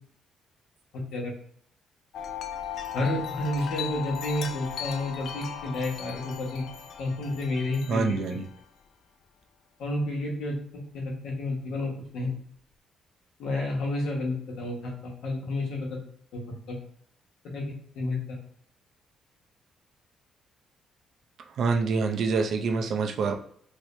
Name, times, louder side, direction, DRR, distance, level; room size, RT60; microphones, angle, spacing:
voice 1, 0.9-1.3 2.9-6.7 7.0-8.4 9.8-12.3 13.4-16.0 16.3-16.8 17.4-18.4, left 2 dB, 80° left, -1 dB, 1.2 m, -31 dB
Wind chime, 2.1-8.7, left 8 dB, 55° left, 0.3 m, -37 dB
voice 2, 7.9-8.5 21.6-23.3, right 4 dB, 55° right, 4 dB, 0.5 m, -26 dB
3.1 x 2.7 x 3.1 m, 0.64 s
cardioid pair, 160°, 0 cm